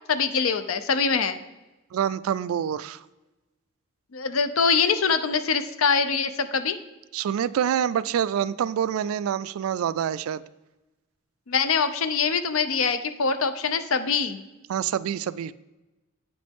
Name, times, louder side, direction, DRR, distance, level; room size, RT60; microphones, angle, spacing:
voice 1, 0.1-1.4 4.1-6.8 11.5-14.4, left 5 dB, 80° left, 10 dB, 0.6 m, -24 dB
voice 2, 1.9-3.0 7.1-10.4 14.7-15.5, right 9 dB, 90° right, 17 dB, 0.3 m, -26 dB
8.7 x 5.2 x 3.5 m, 1.1 s
head